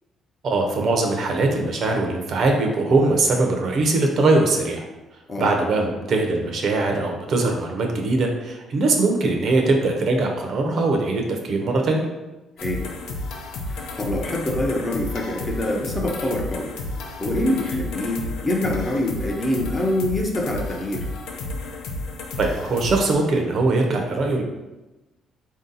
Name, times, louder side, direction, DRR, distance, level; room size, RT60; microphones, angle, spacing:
voice 1, 0.4-4.8 5.4-12.0 22.4-24.4, right 2 dB, 45° right, 2 dB, 0.6 m, -21 dB
sound 1, 12.6-23.1, left 2 dB, 85° left, 0.6 m, -32 dB
voice 2, 12.6-12.9 13.7-16.7 17.2-21.1, left 1 dB, 15° left, -1 dB, 0.5 m, -25 dB
4.3 x 2.7 x 3.8 m, 1.1 s
cardioid pair, 170°, 0 cm